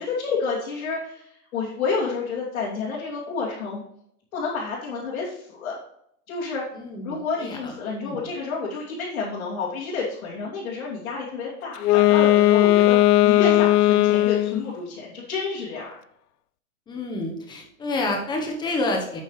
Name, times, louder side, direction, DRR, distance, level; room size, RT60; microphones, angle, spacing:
voice 1, 0.0-3.8 4.3-5.8 6.3-6.6 7.0-13.0 13.2-16.0, left 4 dB, 60° left, -7 dB, 2.9 m, -29 dB
voice 2, 6.7-7.7 8.0-8.3 16.9-19.2, left 2 dB, 10° left, 2 dB, 1.0 m, -29 dB
Wind instrument woodwind instrument, 11.8-14.7, left 16 dB, 80° left, 0.5 m, -17 dB
8.6 x 8.3 x 3.2 m, 0.74 s
hypercardioid pair, 155°, 45 cm